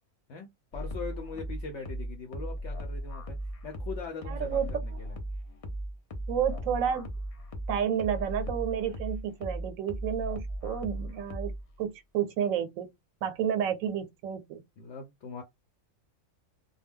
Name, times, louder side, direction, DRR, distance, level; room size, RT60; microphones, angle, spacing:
voice 1, 0.3-5.1 14.8-15.4, left 5 dB, 65° left, 0.9 m, -41 dB
sound 1, 0.7-11.7, right 1 dB, 50° left, 0.4 m, -37 dB
voice 2, 4.3-5.0 6.3-7.1 7.7-11.5 11.8-12.9 13.2-14.6, right 8 dB, 90° right, 1.0 m, -31 dB
2.2 x 2.2 x 3.5 m
omnidirectional pair, 1.4 m